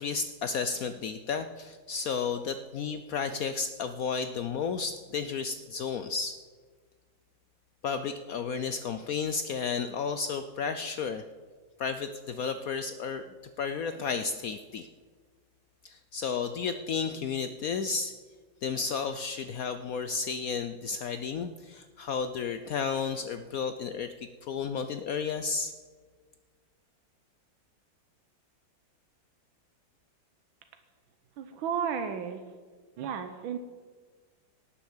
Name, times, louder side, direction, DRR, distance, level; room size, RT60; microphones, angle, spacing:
voice 1, 0.0-6.4 7.8-11.2 11.8-13.2 13.6-14.9 15.8-18.1 18.6-25.7, left 5 dB, 75° left, 10 dB, 0.8 m, -32 dB
voice 2, 31.4-32.4 33.0-33.6, right 7 dB, 85° right, 7 dB, 1.6 m, -33 dB
18.0 x 7.2 x 7.2 m, 1.5 s
omnidirectional pair, 2.1 m